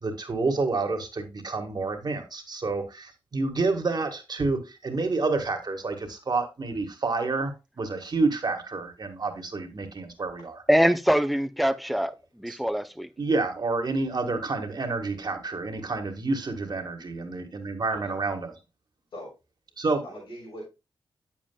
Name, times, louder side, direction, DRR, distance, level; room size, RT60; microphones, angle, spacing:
voice 1, 0.0-10.6 12.5-12.6 13.2-18.5 19.8-20.0, right 3 dB, 50° right, 1.7 m, -29 dB
voice 2, 10.7-13.1, equal, ahead, 0.5 m, -24 dB
voice 3, 20.0-20.7, equal, 85° left, 4.7 m, -41 dB
8.6 x 7.4 x 2.3 m
cardioid pair, 60°, 9 cm